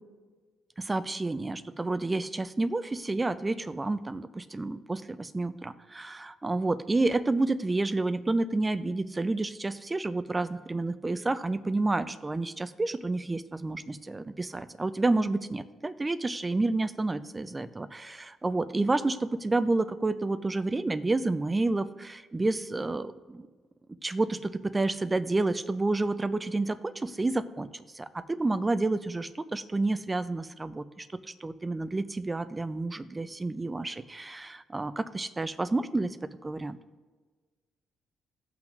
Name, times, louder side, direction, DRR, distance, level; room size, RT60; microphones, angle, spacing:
voice 1, 0.8-23.5 24.0-27.7 27.9-31.1 31.4-36.2 36.4-36.8, right 2 dB, 20° right, 12 dB, 0.6 m, -29 dB
17.5 x 5.9 x 2.6 m, 1.4 s
cardioid pair, 75°, 0 cm